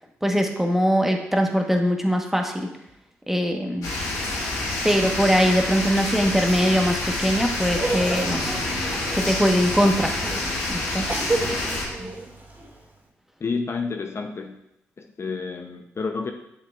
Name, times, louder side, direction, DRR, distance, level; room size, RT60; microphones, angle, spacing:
voice 1, 0.2-2.7 3.3-3.9 4.8-8.6 9.1-10.1 10.7-11.1, equal, 5° right, 3 dB, 1.2 m, -22 dB
sound 1, 3.8-11.8, left 2 dB, 85° left, 1.7 m, -28 dB
Laughter, 7.8-12.8, right 2 dB, 35° right, 2.2 m, -31 dB
voice 2, 13.4-14.6 15.0-16.3, left 4 dB, 50° left, 4 dB, 0.7 m, -30 dB
7.8 x 6.5 x 2.4 m, 0.82 s
supercardioid pair, 45°, 6 cm